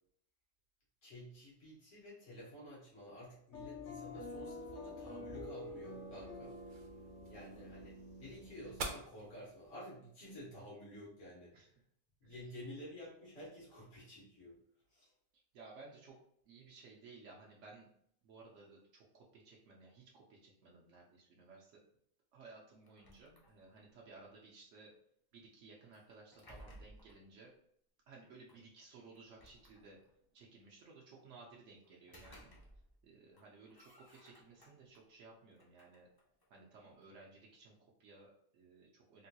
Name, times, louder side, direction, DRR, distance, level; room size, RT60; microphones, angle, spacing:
voice 1, 1.0-6.8 7.3-11.7 12.2-14.6 14.9-15.1, equal, 90° left, -6 dB, 1.6 m, -52 dB
sound 1, 3.5-8.9, left 2 dB, 55° left, 0.7 m, -48 dB
sound 2, 3.8-9.8, right 3 dB, 55° right, 0.6 m, -51 dB
voice 2, 15.5-16.2 16.5-17.9 18.2-21.8 22.3-24.9 25.3-27.5 28.1-30.0 30.3-32.5 33.0-36.1 36.5-39.3, right 3 dB, 85° right, -2 dB, 1.0 m, -58 dB
sound 3, 22.8-24.0 25.9-27.3 28.5-28.6 29.2-30.2 31.8-33.1 33.3-35.0 35.5-37.1, equal, 30° left, 0.4 m, -60 dB
3.6 x 2.2 x 2.7 m, 0.68 s
omnidirectional pair, 1.2 m